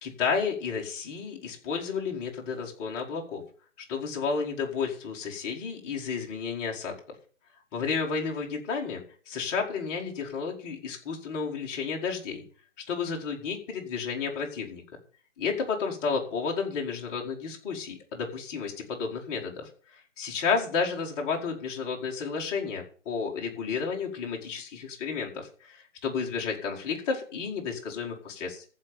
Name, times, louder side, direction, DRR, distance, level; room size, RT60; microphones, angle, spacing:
voice 1, 0.0-3.4 3.8-6.9 7.7-12.4 12.9-14.8 15.4-28.6, left 5 dB, 15° left, 0 dB, 1.9 m, -32 dB
14.5 x 5.3 x 6.7 m, 0.42 s
hypercardioid pair, 155°, 38 cm